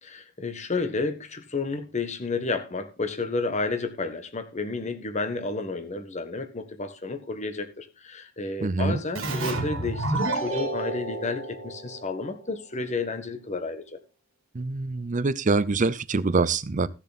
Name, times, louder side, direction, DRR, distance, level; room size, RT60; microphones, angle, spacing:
voice 1, 0.0-14.0, left 3 dB, 35° left, 1.4 m, -31 dB
voice 2, 8.6-9.0 14.5-16.9, right 3 dB, 40° right, 0.5 m, -25 dB
Keyboard (musical), 9.1-12.5, right 2 dB, 75° right, 3.5 m, -30 dB
14.5 x 7.1 x 4.1 m
head